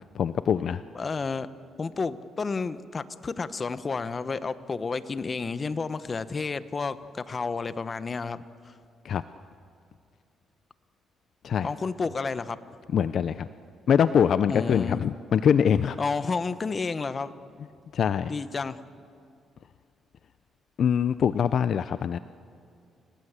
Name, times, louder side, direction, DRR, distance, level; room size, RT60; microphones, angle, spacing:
voice 1, 0.1-0.8 9.0-9.2 11.4-11.7 12.9-13.5 13.9-16.0 17.9-18.3 20.8-22.2, left 8 dB, 60° left, 13 dB, 0.6 m, -23 dB
voice 2, 0.9-1.5 1.8-8.7 11.6-12.6 14.5-15.0 16.0-17.3 18.3-18.8, left 4 dB, 35° left, 13 dB, 1.1 m, -31 dB
30.0 x 18.5 x 8.3 m, 2.4 s
cardioid pair, 90°, 0 cm